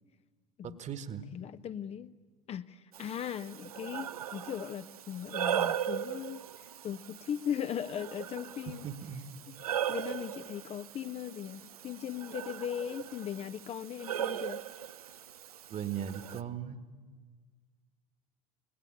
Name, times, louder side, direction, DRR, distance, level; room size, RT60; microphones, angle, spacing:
voice 1, 0.6-1.2 8.8-9.2 15.7-16.8, right 9 dB, 40° right, 1.7 m, -38 dB
voice 2, 1.3-2.2 2.5-8.9 9.5-14.7, left 9 dB, 35° left, 0.6 m, -39 dB
Breathing, 2.9-16.4, right 10 dB, 85° right, 0.6 m, -38 dB
26.0 x 19.5 x 8.7 m
hypercardioid pair, 75°, 18 cm